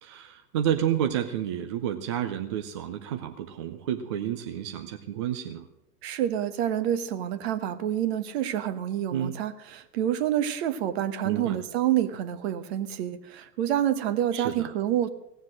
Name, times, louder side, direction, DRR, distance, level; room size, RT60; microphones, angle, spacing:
voice 1, 0.0-5.7 9.1-9.4 11.2-11.6 14.3-14.7, right 10 dB, 20° right, 7 dB, 0.4 m, -30 dB
voice 2, 6.0-15.1, right 11 dB, 40° right, 12 dB, 1.2 m, -28 dB
17.0 x 7.3 x 7.5 m, 0.86 s
figure-of-eight pair, 110°, 47 cm